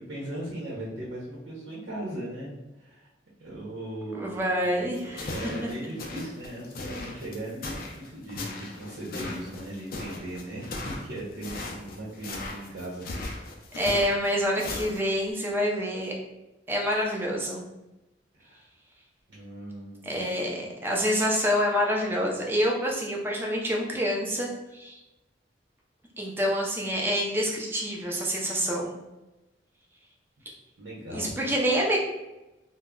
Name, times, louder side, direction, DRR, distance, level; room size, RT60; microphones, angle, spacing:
voice 1, 0.0-3.1 3.4-13.5 18.3-18.6 19.3-20.2 30.8-31.3, right 1 dB, 75° right, -6 dB, 0.7 m, -38 dB
voice 2, 4.1-5.3 13.8-16.1 16.7-17.6 20.1-25.0 26.2-28.9 31.1-32.0, equal, 10° right, -2 dB, 0.4 m, -27 dB
sound 1, 4.9-15.3, left 2 dB, 50° left, 0.4 m, -38 dB
2.2 x 2.0 x 3.5 m, 0.99 s
head